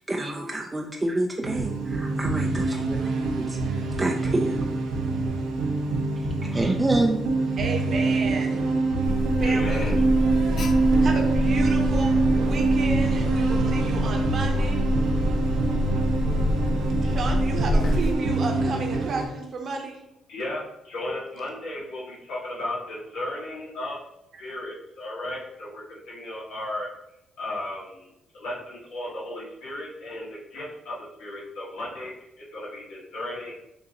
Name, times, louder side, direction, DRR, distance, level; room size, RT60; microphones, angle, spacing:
voice 1, 0.0-3.0 3.4-4.7 6.2-7.2, right 1 dB, 15° right, 1 dB, 0.4 m, -27 dB
sound 1, 1.4-19.3, right 3 dB, 90° right, 0.8 m, -25 dB
voice 2, 7.6-8.6 9.4-9.9 11.0-14.8 16.6-20.0 24.3-24.4, right 3 dB, 55° right, 3 dB, 0.9 m, -32 dB
Alarm, 9.0-18.1, left 1 dB, 60° left, 0.5 m, -26 dB
voice 3, 9.4-9.9 20.3-24.0 24.4-26.9 27.4-32.1 32.4-33.5, left 1 dB, 80° left, -6 dB, 1.3 m, -35 dB
6.6 x 2.6 x 2.8 m, 0.85 s
cardioid pair, 90°, 0 cm